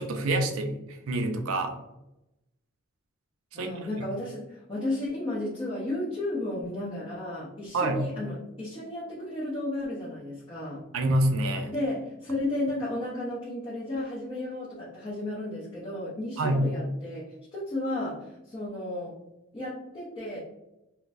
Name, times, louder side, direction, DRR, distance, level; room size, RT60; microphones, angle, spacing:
voice 1, 0.0-1.7 3.5-3.7 7.7-8.0 10.9-11.7 16.4-16.7, right 1 dB, 70° right, 5 dB, 0.5 m, -26 dB
voice 2, 3.5-10.8 11.6-19.1 19.5-20.4, left 1 dB, 20° left, -9 dB, 0.6 m, -33 dB
3.9 x 2.1 x 2.5 m, 0.92 s
head